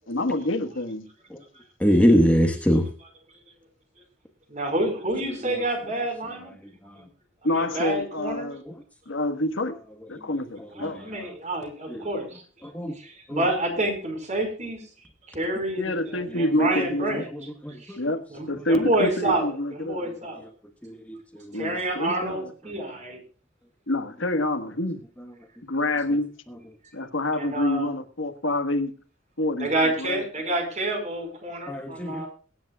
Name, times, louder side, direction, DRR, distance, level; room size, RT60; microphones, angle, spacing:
voice 1, 0.1-1.0 7.4-8.6 9.1-9.8 10.1-11.0 15.8-17.2 18.0-20.0 21.5-22.5 23.9-25.0 25.6-26.3 26.9-28.9 29.4-29.7 30.0-30.2, left 1 dB, 80° left, 1.6 m, -27 dB
voice 2, 1.8-2.8 12.7-12.9 13.3-13.4 17.6-18.0 20.8-21.2 31.7-32.2, equal, 5° left, 1.4 m, -21 dB
voice 3, 4.5-6.5 7.0-7.1 7.4-8.5 10.8-12.4 12.9-14.8 15.3-17.2 17.8-18.0 18.3-20.4 21.5-23.2 27.3-27.9 29.6-32.3, right 1 dB, 40° right, 5.0 m, -28 dB
22.5 x 10.5 x 2.4 m
head